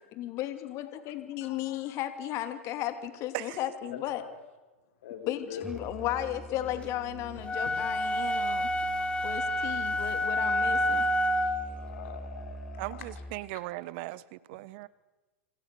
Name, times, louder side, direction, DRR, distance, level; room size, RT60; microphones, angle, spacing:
voice 1, 0.2-4.2 5.3-8.7 9.2-11.0, left 13 dB, 45° left, 9 dB, 2.6 m, -35 dB
voice 2, 1.4-2.1 3.9-4.4 5.0-5.7 5.9-6.0 7.7-7.9 8.6-8.9 10.0-10.1 11.0-11.1 11.6-13.1, left 8 dB, 70° left, 6 dB, 5.5 m, -45 dB
Musical instrument, 5.6-13.4, right 2 dB, 5° right, 5.8 m, -44 dB
sound 1, 7.4-11.7, left 1 dB, 15° left, 3.3 m, -28 dB
voice 3, 12.8-14.9, right 19 dB, 55° right, 19 dB, 1.1 m, -38 dB
27.0 x 27.0 x 6.9 m, 1.2 s
hypercardioid pair, 105°, 7 cm